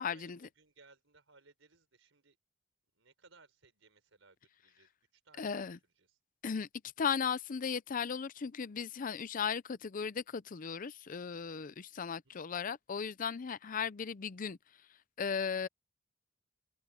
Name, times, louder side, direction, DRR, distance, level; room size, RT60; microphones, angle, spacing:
voice 1, 0.0-0.5 5.4-5.8 6.4-6.7 7.0-14.6 15.2-15.7, left 6 dB, 45° left, 0.5 m, -36 dB
voice 2, 0.6-2.3 3.0-4.4 4.6-4.9 5.3-5.5 12.0-12.1, right 4 dB, 75° right, 5.1 m, -63 dB
head